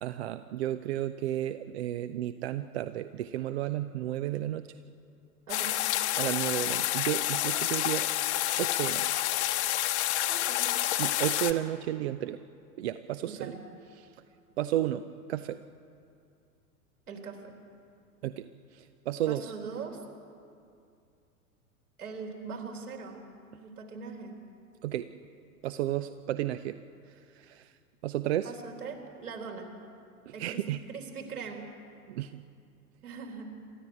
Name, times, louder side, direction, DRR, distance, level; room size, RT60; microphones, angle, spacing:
voice 1, 0.0-4.7 6.2-8.1 8.6-9.1 11.0-12.4 12.8-13.5 14.6-15.6 18.2-18.5 18.7-19.5 24.8-25.1 25.6-26.8 27.3-27.7 28.0-28.5 30.3-30.8 32.1-32.5, right 13 dB, 45° right, 12 dB, 0.7 m, -32 dB
sound 1, 5.5-11.5, left 14 dB, 45° left, 1.2 m, -29 dB
voice 2, 10.3-10.7 13.3-13.6 17.1-17.5 19.3-20.0 22.0-24.4 28.4-29.7 30.3-31.7 33.0-33.5, right 5 dB, 70° right, 2 dB, 4.0 m, -41 dB
26.5 x 13.0 x 9.4 m, 2.4 s
figure-of-eight pair, 95°, 46 cm